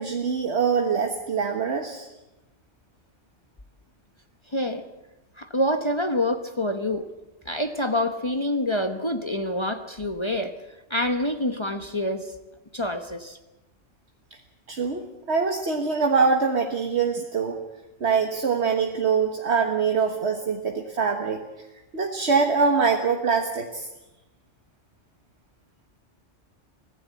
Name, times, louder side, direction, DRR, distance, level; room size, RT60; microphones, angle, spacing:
voice 1, 0.0-2.1 14.7-17.6 18.0-21.4 21.9-23.9, right 5 dB, 65° right, 3 dB, 1.7 m, -24 dB
voice 2, 4.5-4.8 5.4-7.1 7.4-10.5 10.9-12.3 12.7-13.4, left 1 dB, 25° left, 7 dB, 1.0 m, -26 dB
24.5 x 16.0 x 8.3 m, 1.0 s
omnidirectional pair, 1.3 m